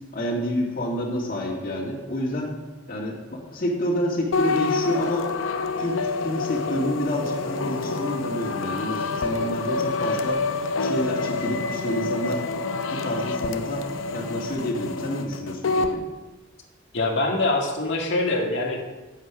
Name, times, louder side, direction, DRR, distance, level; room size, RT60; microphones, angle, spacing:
voice 1, 0.1-2.5 2.9-5.3 5.7-10.4 10.8-12.4 12.9-13.8 14.1-16.1, left 1 dB, 45° left, -3 dB, 2.3 m, -28 dB
sound 1, 4.3-16.0, left 3 dB, 85° left, 0.6 m, -27 dB
voice 2, 16.9-18.8, left 2 dB, 65° left, 1 dB, 1.8 m, -24 dB
10.5 x 7.6 x 4.9 m, 1.2 s
head